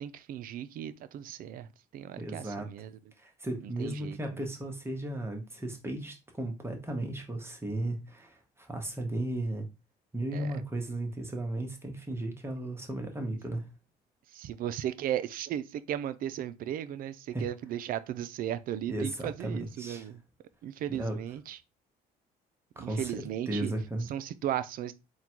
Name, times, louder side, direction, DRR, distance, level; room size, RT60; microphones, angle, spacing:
voice 1, 0.0-1.7 1.9-2.9 3.6-4.2 10.3-10.5 14.3-20.2 20.6-21.6 22.8-23.7 24.1-24.9, right 11 dB, 55° right, 0.4 m, -36 dB
voice 2, 2.2-2.7 3.2-9.7 10.1-13.6 17.3-17.4 18.9-20.1 20.9-21.2 22.8-23.1 23.5-24.1, right 1 dB, 15° right, 0.8 m, -35 dB
3.7 x 2.2 x 4.4 m
cardioid pair, 110°, 17 cm